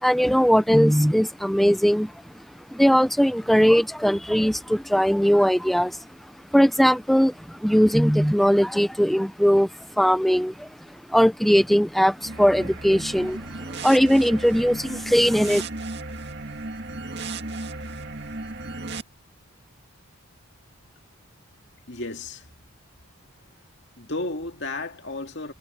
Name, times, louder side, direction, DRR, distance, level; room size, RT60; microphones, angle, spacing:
voice 1, 0.0-2.1 2.7-6.0 6.5-9.7 10.0-10.7 11.1-13.4 13.7-15.6, equal, ahead, 0.5 m, -19 dB
sound 1, 12.2-19.0, right 2 dB, 50° right, 2.2 m, -35 dB
voice 2, 21.9-22.5 24.0-25.5, left 2 dB, 55° left, 2.3 m, -33 dB
head